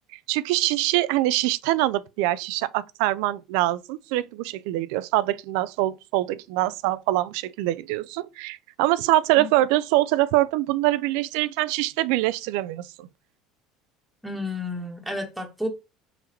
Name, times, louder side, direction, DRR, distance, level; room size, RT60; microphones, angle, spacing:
voice 1, 0.3-13.1, right 16 dB, 75° right, 0.3 m, -24 dB
voice 2, 14.2-15.7, left 1 dB, 5° right, 1.2 m, -31 dB
4.2 x 3.9 x 3.0 m
supercardioid pair, 90°, 0 cm